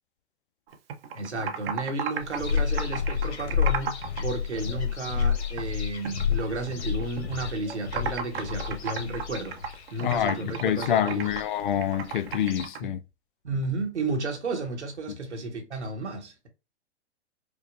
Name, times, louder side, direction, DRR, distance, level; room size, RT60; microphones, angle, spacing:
Computer keyboard, 0.7-4.2 4.5-5.7 6.0-7.3 7.6-12.8, right 7 dB, 55° right, 0.8 m, -34 dB
voice 1, 1.1-9.6 9.9-11.4 12.8-12.9 13.4-16.5, right 3 dB, 85° right, 1.3 m, -33 dB
sound 1, 2.2-12.6, left 8 dB, 65° left, 1.2 m, -31 dB
voice 2, 10.0-13.0 15.1-15.2, left 10 dB, 50° left, 0.4 m, -27 dB
5.1 x 2.2 x 2.5 m
figure-of-eight pair, 115°, 34 cm